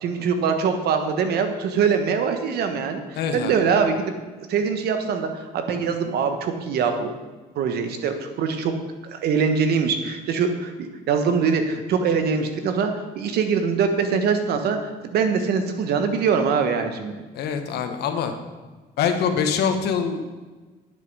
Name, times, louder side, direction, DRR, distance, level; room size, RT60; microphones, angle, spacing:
voice 1, 0.0-3.9 4.5-7.1 7.5-8.7 9.1-14.8 15.1-17.2, right 6 dB, 70° right, 7 dB, 1.3 m, -23 dB
voice 2, 3.1-3.6 17.3-18.3 19.0-20.2, left 7 dB, 75° left, 7 dB, 1.2 m, -24 dB
9.3 x 8.2 x 5.5 m, 1.3 s
cardioid pair, 110°, 17 cm